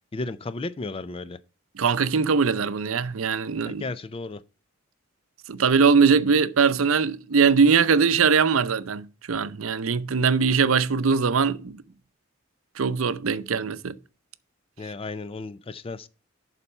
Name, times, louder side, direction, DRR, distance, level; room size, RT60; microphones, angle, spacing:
voice 1, 0.1-1.4 3.7-4.4 14.8-16.1, left 3 dB, 25° left, 0.4 m, -34 dB
voice 2, 1.8-3.8 5.5-11.8 12.8-14.0, right 5 dB, 85° right, 0.6 m, -21 dB
11.0 x 4.2 x 5.4 m
head